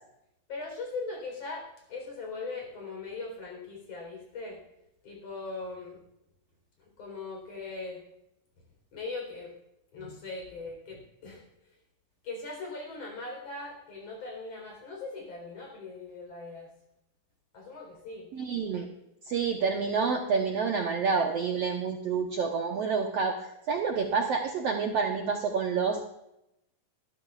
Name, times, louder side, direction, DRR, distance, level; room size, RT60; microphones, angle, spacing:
voice 1, 0.5-4.6 5.0-6.0 6.8-8.0 8.9-9.5 9.9-11.5 12.2-16.7 17.5-18.3, left 3 dB, 45° left, 1 dB, 4.8 m, -40 dB
voice 2, 18.3-18.9 19.2-23.4 23.7-26.0, right 5 dB, 75° right, 2 dB, 1.4 m, -28 dB
20.5 x 12.5 x 2.4 m, 0.84 s
omnidirectional pair, 4.2 m